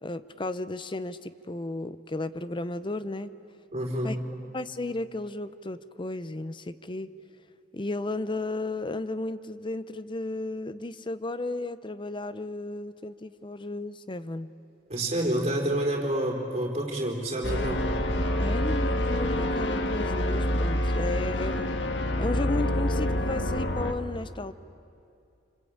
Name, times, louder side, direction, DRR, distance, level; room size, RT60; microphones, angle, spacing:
voice 1, 0.0-3.3 4.0-4.2 4.5-7.1 7.7-14.5 18.4-21.7 22.2-24.5, left 2 dB, 25° left, 14 dB, 0.7 m, -34 dB
voice 2, 3.7-4.2 14.9-17.9, right 1 dB, 35° right, 0 dB, 4.3 m, -28 dB
sound 1, 17.4-23.9, left 1 dB, 70° left, 1.6 m, -27 dB
26.5 x 26.0 x 8.8 m, 2.6 s
head